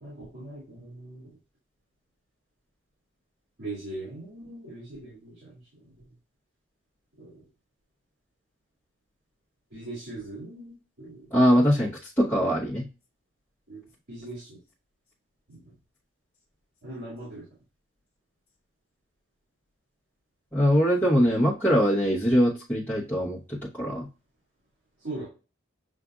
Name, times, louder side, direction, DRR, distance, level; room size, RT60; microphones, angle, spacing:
voice 1, 0.0-1.3 3.6-5.6 7.2-7.4 9.7-11.2 13.7-13.8 14.1-14.6 15.5-15.6 16.8-17.4 25.0-25.2, right 2 dB, 65° right, -7 dB, 2.2 m, -40 dB
voice 2, 11.3-12.9 20.5-24.1, equal, 10° left, -9 dB, 0.9 m, -22 dB
6.9 x 2.5 x 2.4 m, 0.32 s
head